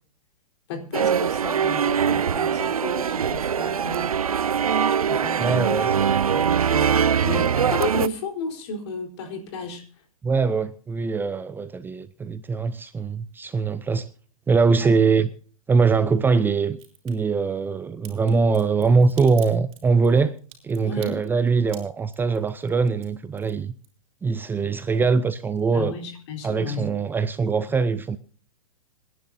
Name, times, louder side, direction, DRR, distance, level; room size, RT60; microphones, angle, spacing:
voice 1, 0.7-4.1 5.0-5.6 6.3-9.8 14.8-14.9 20.8-21.2 25.7-26.9, left 3 dB, 50° left, 4.3 m, -33 dB
sound 1, 0.9-8.1, right 7 dB, 85° right, 0.5 m, -22 dB
voice 2, 5.4-6.2 10.2-14.1 14.5-15.3 15.7-16.8 17.0-20.3 20.6-23.7 24.2-25.9 26.4-28.2, right 4 dB, 10° right, 0.7 m, -22 dB
Crack, 16.7-17.1 18.0-24.3 24.6-25.3 25.6-25.7, right 10 dB, 30° right, 6.2 m, -47 dB
26.5 x 11.0 x 2.8 m
hypercardioid pair, 115°, 18 cm